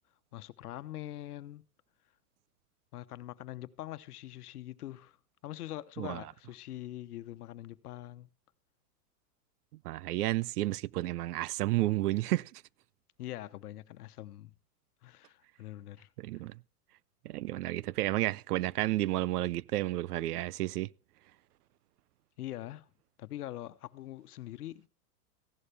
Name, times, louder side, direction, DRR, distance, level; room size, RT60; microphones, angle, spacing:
voice 1, 0.3-1.6 2.9-5.2 5.4-8.3 13.2-14.5 15.0-16.1 22.4-22.9 23.2-24.9, left 14 dB, 75° left, 1.1 m, -43 dB
voice 2, 9.8-12.6 16.2-16.6 17.2-20.9, right 16 dB, 75° right, 0.6 m, -31 dB
15.5 x 11.5 x 3.4 m
supercardioid pair, 145°, 46 cm